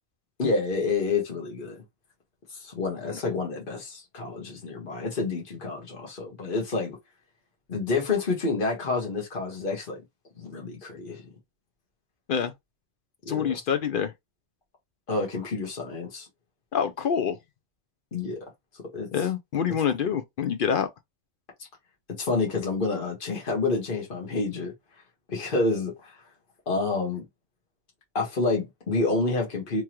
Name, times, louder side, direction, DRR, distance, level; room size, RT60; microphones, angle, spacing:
voice 1, 0.4-1.8 2.5-7.0 7.7-10.0 10.4-11.2 13.2-13.6 15.1-16.3 18.1-18.4 18.9-19.1 22.2-24.7 25.3-26.2 26.7-27.2 28.1-29.8, left 3 dB, 45° left, 1.5 m, -28 dB
voice 2, 13.3-14.1 16.7-17.4 19.1-20.9, left 7 dB, 60° left, 0.5 m, -26 dB
3.5 x 3.1 x 2.9 m
omnidirectional pair, 1.3 m